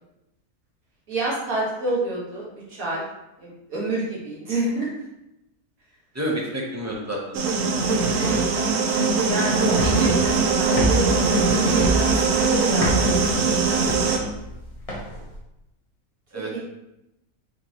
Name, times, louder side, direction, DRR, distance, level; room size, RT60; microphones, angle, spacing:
voice 1, 1.1-3.0 3.4-4.9 8.0-8.3 8.7-12.9 13.6-14.1 16.5-16.6, right 2 dB, 65° right, -6 dB, 2.0 m, -29 dB
voice 2, 6.1-7.4 14.1-14.3 16.3-16.6, right 1 dB, 15° right, -3 dB, 0.5 m, -30 dB
sound 1, 7.3-14.2, right 4 dB, 85° right, 1.1 m, -21 dB
sound 2, 9.7-15.4, right 1 dB, 30° left, 0.9 m, -28 dB
4.3 x 3.8 x 2.9 m, 0.90 s
omnidirectional pair, 1.6 m